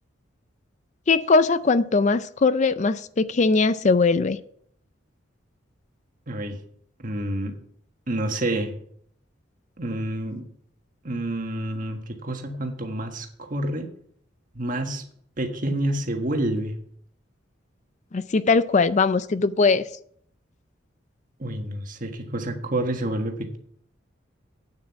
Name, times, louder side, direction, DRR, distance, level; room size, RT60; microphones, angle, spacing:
voice 1, 1.1-4.4 18.1-19.9, left 4 dB, 35° left, 0.4 m, -20 dB
voice 2, 6.3-6.6 7.0-7.5 8.1-8.7 9.8-10.4 11.0-13.9 14.5-15.0 15.4-16.8 21.4-23.6, right 1 dB, 45° right, 1.5 m, -28 dB
8.9 x 7.5 x 5.8 m
head